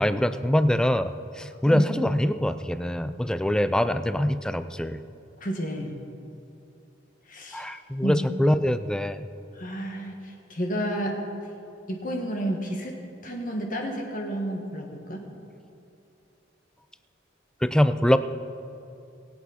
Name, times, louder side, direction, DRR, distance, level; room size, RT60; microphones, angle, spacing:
voice 1, 0.0-5.0 7.5-9.3 17.6-18.2, equal, 5° left, 12 dB, 0.3 m, -24 dB
voice 2, 5.4-6.1 7.3-7.7 8.0-8.2 9.6-11.3 11.9-12.9 13.2-15.3, right 1 dB, 45° left, 1 dB, 1.7 m, -31 dB
21.0 x 8.4 x 4.2 m, 2.7 s
head